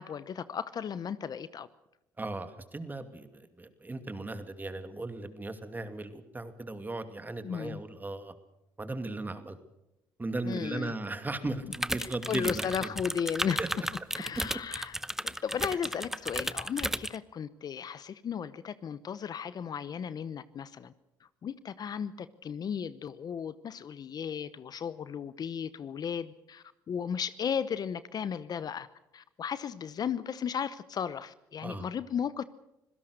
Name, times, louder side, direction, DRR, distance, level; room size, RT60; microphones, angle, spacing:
voice 1, 0.0-1.7 7.4-7.8 10.4-10.9 11.4-11.7 12.0-13.6 14.1-14.9 15.2-20.9 21.4-28.9 29.1-32.4, left 7 dB, 50° left, 15 dB, 0.9 m, -35 dB
voice 2, 2.2-8.3 8.8-9.6 10.2-12.9 13.6-13.7 31.6-31.9, right 2 dB, 20° right, 9 dB, 2.5 m, -37 dB
sound 1, 11.7-17.2, right 1 dB, 5° right, 0.9 m, -34 dB
25.5 x 16.5 x 6.6 m, 0.87 s
supercardioid pair, 65°, 9 cm